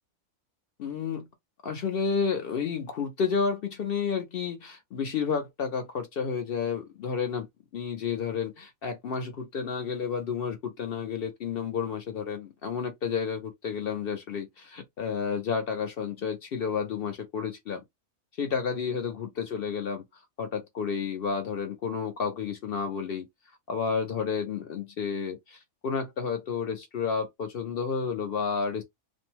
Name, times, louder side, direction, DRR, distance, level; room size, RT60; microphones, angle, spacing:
voice 1, 0.8-1.3 1.6-7.5 7.7-17.8 18.4-19.1 19.5-20.0 20.4-23.3 23.7-28.8, left 6 dB, 60° left, 0.6 m, -31 dB
2.6 x 2.1 x 2.8 m
omnidirectional pair, 1.6 m